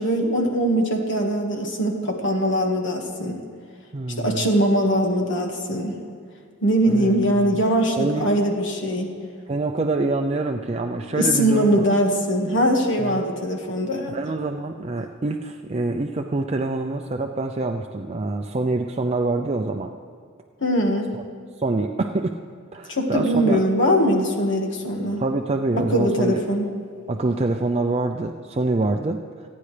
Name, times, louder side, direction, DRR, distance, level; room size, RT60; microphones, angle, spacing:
voice 1, 0.0-3.4 4.2-6.0 6.6-9.1 11.2-14.2 20.6-21.1 22.9-25.2 25.8-26.7, equal, 60° left, 2 dB, 1.7 m, -21 dB
voice 2, 3.9-4.5 6.8-7.6 8.0-8.4 9.5-11.9 13.0-13.3 14.1-19.9 21.1-21.2 21.6-22.3 22.7-23.6 25.2-26.4 27.1-29.2, right 2 dB, 30° right, 4 dB, 0.5 m, -26 dB
28.5 x 9.8 x 3.3 m, 2.2 s
head